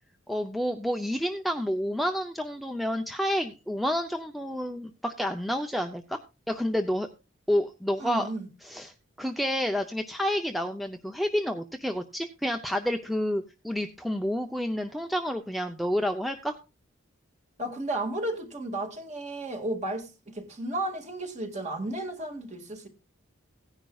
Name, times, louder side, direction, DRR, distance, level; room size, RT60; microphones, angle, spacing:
voice 1, 0.3-6.2 6.5-7.1 7.5-8.3 8.6-8.9 9.2-16.6, equal, ahead, 0.5 m, -29 dB
voice 2, 8.0-8.5 17.6-22.9, right 1 dB, 35° right, 2.0 m, -33 dB
16.5 x 10.5 x 2.3 m
head